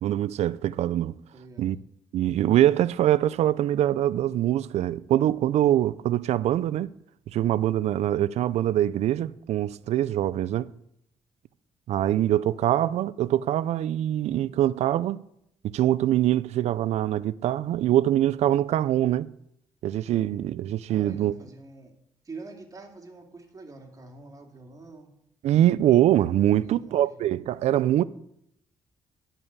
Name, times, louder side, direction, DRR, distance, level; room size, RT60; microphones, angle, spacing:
voice 1, 0.0-1.1 1.6-1.8 2.1-6.9 7.3-10.7 11.9-15.2 15.6-19.3 19.8-21.3 25.4-28.0, right 12 dB, 75° right, 0.4 m, -23 dB
voice 2, 1.3-1.7 20.9-22.0 22.2-25.1 26.5-27.1, right 3 dB, 30° right, 2.6 m, -45 dB
11.0 x 5.6 x 8.1 m
cardioid pair, 85°, 11 cm